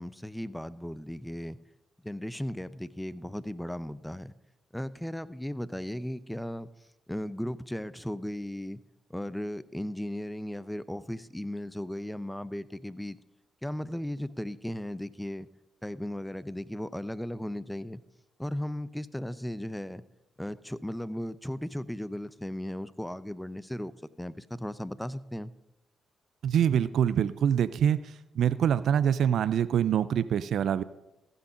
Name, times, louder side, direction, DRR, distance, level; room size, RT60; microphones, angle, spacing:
voice 1, 0.0-1.6 2.0-4.3 4.7-6.7 7.1-8.8 9.1-13.2 13.6-15.5 15.8-18.0 18.4-20.0 20.4-23.9 24.2-25.5, left 1 dB, 5° left, 17 dB, 0.6 m, -36 dB
voice 2, 26.4-30.8, right 9 dB, 70° right, 16 dB, 0.4 m, -25 dB
15.0 x 6.1 x 5.2 m, 0.91 s
supercardioid pair, 50°, 0 cm